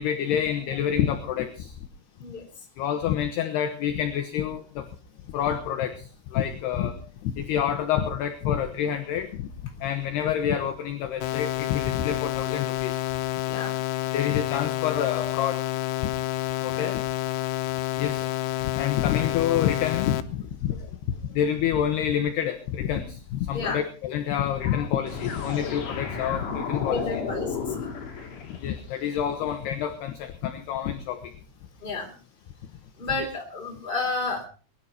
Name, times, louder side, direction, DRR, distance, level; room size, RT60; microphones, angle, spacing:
voice 1, 0.0-1.7 2.8-4.9 5.3-6.9 7.2-9.5 9.8-13.1 14.1-15.6 16.6-17.0 18.0-18.3 18.6-20.9 21.3-27.2 28.5-31.3 33.2-33.3, left 9 dB, 70° left, 8 dB, 2.6 m, -28 dB
sound 1, 11.2-20.2, left 15 dB, 90° left, 3.5 m, -29 dB
sound 2, 25.1-29.0, left 5 dB, 45° left, 3.7 m, -33 dB
voice 2, 26.9-27.7 31.8-32.1 33.0-34.5, left 3 dB, 10° left, 1 dB, 3.1 m, -31 dB
22.5 x 11.0 x 4.3 m, 0.37 s
omnidirectional pair, 5.8 m